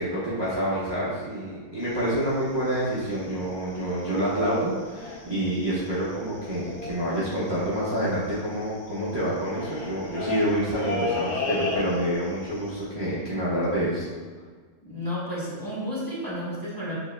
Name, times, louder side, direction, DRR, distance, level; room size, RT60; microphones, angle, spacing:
voice 1, 0.0-14.1, equal, 20° right, -10 dB, 0.8 m, -27 dB
sound 1, 1.8-4.1 4.4-4.6 4.9-5.4 5.7-5.8 5.9-12.3 12.6-12.8, left 3 dB, 60° left, 1.1 m, -34 dB
voice 2, 14.8-16.9, equal, 15° left, -9 dB, 1.2 m, -32 dB
7.3 x 3.0 x 2.2 m, 1.5 s
omnidirectional pair, 1.5 m